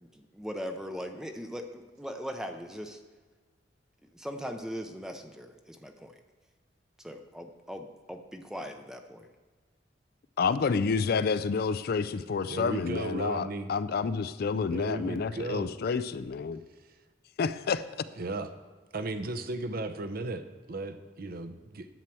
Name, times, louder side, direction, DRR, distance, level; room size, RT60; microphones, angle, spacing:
voice 1, 0.0-3.0 4.1-6.2 7.0-9.3, equal, 5° right, 5 dB, 0.6 m, -40 dB
voice 2, 10.4-16.6 17.4-17.8, left 5 dB, 55° left, 14 dB, 0.4 m, -29 dB
voice 3, 12.5-13.7 14.5-15.7 18.2-18.5 18.9-21.9, right 2 dB, 50° right, 8 dB, 0.7 m, -35 dB
11.0 x 4.5 x 7.6 m, 1.4 s
head